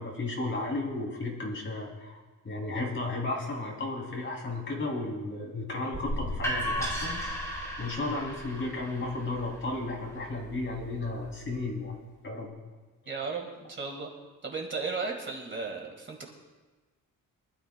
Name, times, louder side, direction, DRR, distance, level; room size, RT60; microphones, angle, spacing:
voice 1, 0.0-2.2 2.4-7.2 7.8-12.0 12.2-12.5, left 2 dB, 35° left, -1 dB, 2.9 m, -34 dB
sound 1, 5.9-11.7, equal, 10° left, 2.8 m, -36 dB
voice 2, 13.1-14.1 14.4-16.3, right 4 dB, 35° right, 1 dB, 1.7 m, -35 dB
23.5 x 12.5 x 2.2 m, 1.2 s
wide cardioid pair, 175°, 34 cm